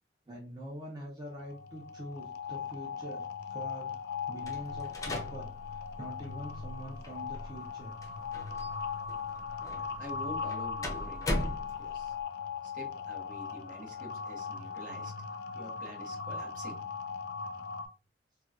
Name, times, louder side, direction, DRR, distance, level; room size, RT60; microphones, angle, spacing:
voice 1, 0.3-4.0 4.3-7.9, right 1 dB, 25° right, -3 dB, 0.6 m, -44 dB
sound 1, 1.2-17.9, left 6 dB, 60° left, 0.4 m, -39 dB
sound 2, 4.4-12.2, left 1 dB, 20° left, 0.6 m, -40 dB
voice 2, 10.0-11.5 11.8-12.1 12.7-15.1 15.5-16.8, equal, 50° right, 1 dB, 1.1 m, -46 dB
3.9 x 2.2 x 2.4 m, 0.34 s
head